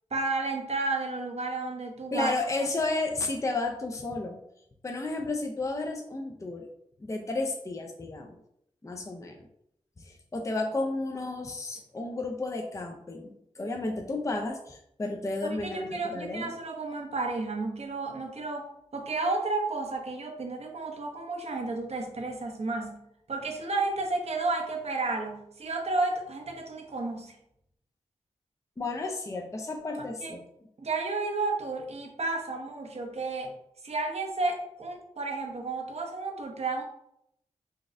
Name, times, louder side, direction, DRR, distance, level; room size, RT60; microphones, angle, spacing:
voice 1, 0.1-2.3 15.4-23.0 23.3-27.3 30.2-30.3 30.8-33.5 33.8-36.8, right 3 dB, 55° right, 3 dB, 0.7 m, -32 dB
voice 2, 2.1-4.4 4.8-6.7 7.0-8.4 8.8-9.5 10.0-16.6 28.8-30.4, left 2 dB, 25° left, 2 dB, 0.5 m, -32 dB
4.0 x 2.3 x 2.5 m, 0.76 s
cardioid pair, 40°, 13 cm